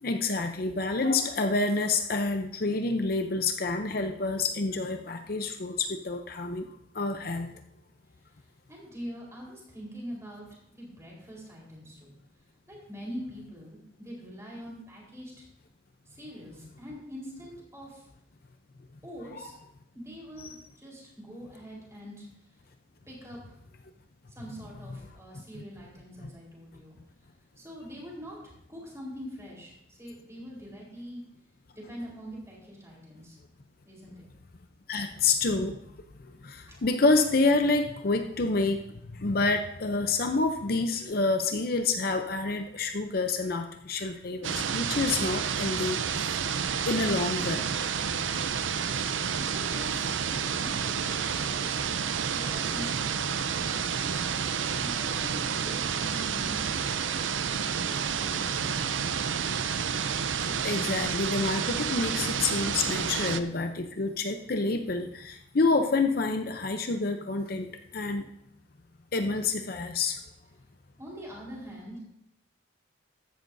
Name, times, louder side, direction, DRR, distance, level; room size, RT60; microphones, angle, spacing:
voice 1, 0.0-6.7 6.9-7.5 19.4-19.5 20.4-20.6 34.9-46.5 46.9-47.7 60.1-68.2 69.1-70.2, left 3 dB, 50° left, 6 dB, 0.7 m, -28 dB
voice 2, 8.7-10.4 10.7-12.1 12.7-15.3 16.1-18.1 19.0-19.5 19.9-22.2 23.1-23.6 24.3-27.0 27.6-31.2 31.7-33.4 33.8-34.3 34.9-35.0 48.6-49.1 49.4-51.8 52.3-54.1 54.5-57.2 57.8-59.0 71.0-72.0, equal, 15° right, -4 dB, 4.1 m, -44 dB
sound 1, 44.4-63.4, right 7 dB, 90° right, 0.6 m, -30 dB
14.5 x 11.0 x 2.7 m, 0.77 s
head